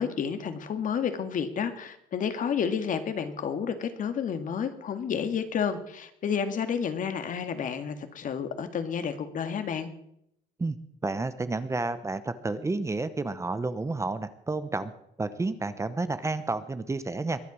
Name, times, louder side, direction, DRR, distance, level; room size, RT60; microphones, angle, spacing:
voice 1, 0.0-9.9, left 7 dB, 50° left, 9 dB, 1.9 m, -30 dB
voice 2, 11.0-14.9 15.2-17.4, right 3 dB, 15° right, 12 dB, 0.9 m, -30 dB
22.0 x 8.3 x 6.2 m, 0.75 s
cardioid pair, 110°, 17 cm